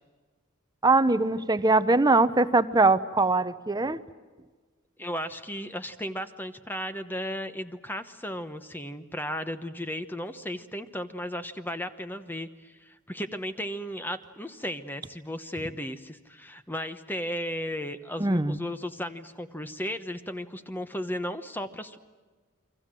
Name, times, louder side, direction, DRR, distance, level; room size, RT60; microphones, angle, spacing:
voice 1, 0.8-4.0 18.2-18.6, right 3 dB, 20° right, 13 dB, 0.8 m, -22 dB
voice 2, 5.0-22.0, equal, 10° left, 10 dB, 1.0 m, -35 dB
29.5 x 24.0 x 7.6 m, 1.3 s
head